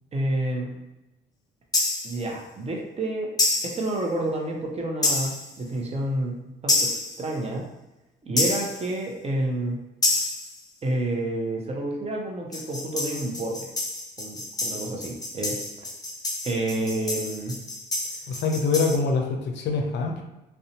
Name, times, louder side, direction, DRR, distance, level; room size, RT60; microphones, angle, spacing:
voice 1, 0.1-0.7 2.0-3.3 3.6-6.9 7.2-7.7 8.2-9.8 10.8-13.7 14.2-15.6 16.4-17.6, right 1 dB, 30° right, 0 dB, 0.7 m, -29 dB
sound 1, 1.7-2.2 3.4-3.9 5.0-5.5 6.7-7.2 8.4-8.9 10.0-10.6 12.5-19.0, left 2 dB, 20° left, 0.6 m, -28 dB
voice 2, 18.3-20.2, left 4 dB, 65° left, 2 dB, 0.5 m, -24 dB
2.5 x 2.1 x 2.8 m, 0.96 s
supercardioid pair, 75°, 20 cm